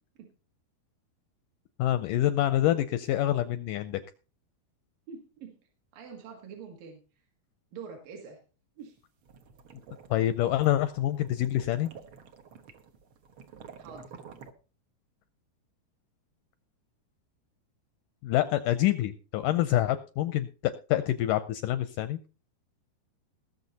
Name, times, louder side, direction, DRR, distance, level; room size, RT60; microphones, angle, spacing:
voice 1, 1.8-4.0 10.1-11.9 18.2-22.2, left 13 dB, 80° left, 12 dB, 1.9 m, -26 dB
voice 2, 5.1-5.6 5.9-7.0 7.7-8.4 8.8-9.0 13.8-14.1, right 6 dB, 65° right, 2 dB, 3.4 m, -45 dB
sound 1, 9.0-14.5, right 6 dB, 80° right, 1.1 m, -50 dB
19.5 x 6.9 x 4.1 m, 0.34 s
omnidirectional pair, 4.5 m